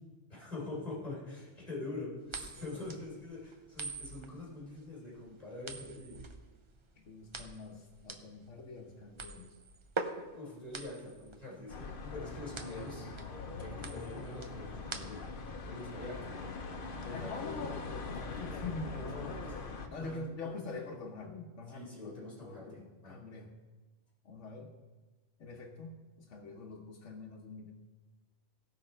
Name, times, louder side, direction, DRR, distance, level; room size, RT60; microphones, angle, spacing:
voice 1, 0.3-6.2 10.3-13.1 13.6-15.2 15.6-16.6 18.9-19.6 20.0-20.2 20.4-20.5 21.7-23.2, left 2 dB, 35° left, -6 dB, 3.8 m, -44 dB
sound 1, 2.3-15.5, right 3 dB, 30° right, 0.6 m, -44 dB
voice 2, 2.6-2.9 7.0-9.6 17.0-19.3 19.9-23.5 24.2-24.8 25.4-27.7, left 3 dB, 80° left, 0 dB, 1.2 m, -45 dB
sound 2, 11.7-19.9, left 3 dB, 50° left, 1.0 m, -42 dB
17.5 x 5.8 x 4.4 m, 1.3 s
omnidirectional pair, 1.2 m